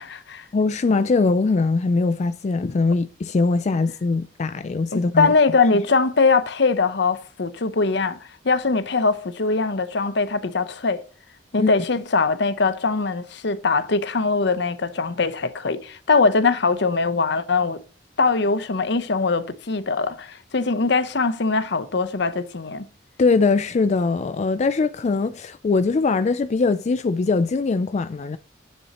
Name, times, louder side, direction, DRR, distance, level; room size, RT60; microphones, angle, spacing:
voice 1, 0.0-0.5 4.9-8.2 8.4-11.0 11.5-17.8 18.2-22.9, left 4 dB, 70° left, 0.8 m, -21 dB
voice 2, 0.5-5.3 11.6-11.7 23.2-28.4, left 3 dB, 40° left, 0.4 m, -21 dB
9.3 x 7.8 x 3.0 m
head